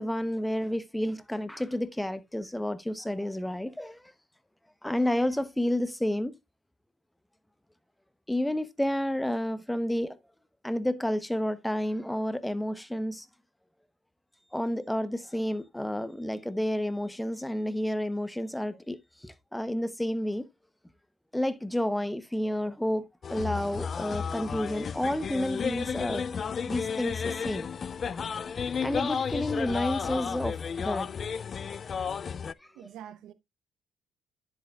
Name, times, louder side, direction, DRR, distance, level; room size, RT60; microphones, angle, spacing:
voice 1, 0.0-4.0 4.8-6.3 8.3-10.2 10.6-13.3 14.5-20.5 21.3-26.2 26.7-27.7 28.8-31.1, left 1 dB, 5° left, 0.9 m, -30 dB
sound 1, 23.2-32.5, left 6 dB, 45° left, 0.4 m, -33 dB
voice 2, 32.4-33.3, right 10 dB, 75° right, 0.9 m, -47 dB
10.0 x 8.0 x 2.4 m
supercardioid pair, 70°, 0 cm